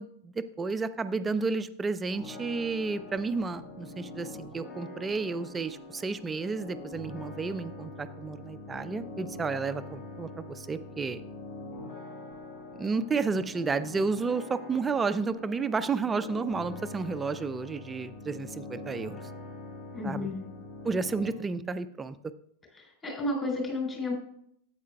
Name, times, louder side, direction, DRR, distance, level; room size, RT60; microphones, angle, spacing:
voice 1, 0.0-11.2 12.7-19.3 20.0-20.3 20.8-22.2, right 4 dB, 15° right, 13 dB, 0.5 m, -31 dB
sound 1, 2.1-21.3, left 2 dB, 45° left, 2.4 m, -44 dB
voice 2, 19.9-20.4 22.8-24.1, left 2 dB, 20° left, -1 dB, 3.8 m, -32 dB
13.0 x 8.8 x 2.2 m, 0.69 s
figure-of-eight pair, 90°, 0 cm